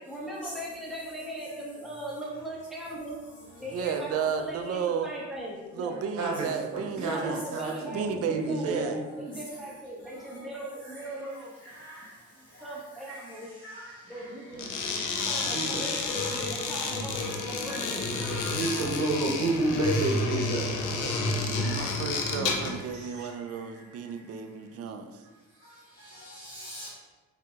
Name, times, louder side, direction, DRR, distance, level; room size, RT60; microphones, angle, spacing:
voice 1, 0.0-3.1 3.6-6.0 7.0-11.5 12.6-13.5 14.1-14.7 15.2-18.0, right 1 dB, ahead, -6 dB, 1.2 m, -39 dB
voice 2, 3.7-5.1 5.7-7.5 7.8-9.0 21.5-25.2, right 6 dB, 55° right, 7 dB, 0.4 m, -33 dB
voice 3, 5.9-9.1 14.9-15.0 15.4-15.9 17.9-18.0 18.4-21.7 22.9-23.3, right 2 dB, 70° right, -1 dB, 1.0 m, -31 dB
sound 1, 14.5-22.8, left 3 dB, 85° left, 0.6 m, -30 dB
voice 4, 17.7-18.9 21.6-21.9 26.3-26.9, right 1 dB, 40° left, -9 dB, 1.2 m, -43 dB
4.7 x 3.5 x 2.3 m, 1.2 s
cardioid pair, 90°, 30 cm